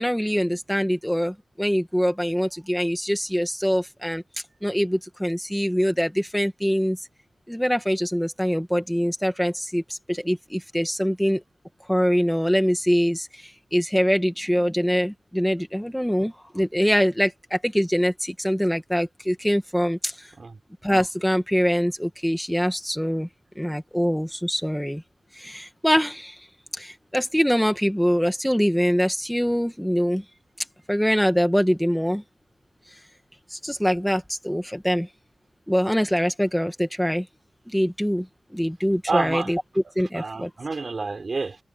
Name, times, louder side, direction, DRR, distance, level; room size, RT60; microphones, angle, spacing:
voice 1, 0.0-4.2 4.6-7.0 7.5-11.4 11.9-20.3 20.8-23.3 23.6-25.0 25.3-26.5 26.7-30.2 30.9-32.2 33.5-35.1 35.7-37.3 37.7-38.3 38.5-39.6 40.0-40.5, equal, ahead, 1.7 m, -24 dB
voice 2, 39.1-39.5 39.8-41.6, right 3 dB, 45° right, 3.8 m, -29 dB
wide cardioid pair, 135°, 0 cm